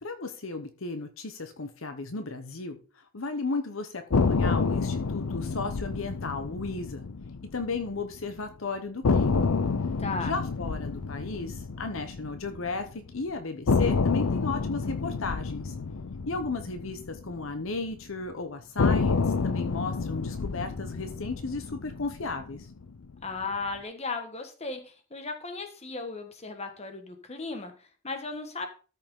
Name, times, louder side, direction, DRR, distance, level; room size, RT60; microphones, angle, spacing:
voice 1, 0.0-2.8 3.1-7.1 7.5-9.5 10.2-15.7 16.3-22.7, left 3 dB, 65° left, 7 dB, 1.0 m, -34 dB
sound 1, 4.1-8.2 8.5-8.6 9.0-13.1 13.7-18.0 18.8-23.1, left 4 dB, 85° left, 0.6 m, -29 dB
voice 2, 10.0-10.3 23.2-28.7, left 3 dB, 30° left, 5 dB, 1.4 m, -36 dB
13.0 x 5.5 x 3.7 m, 0.37 s
head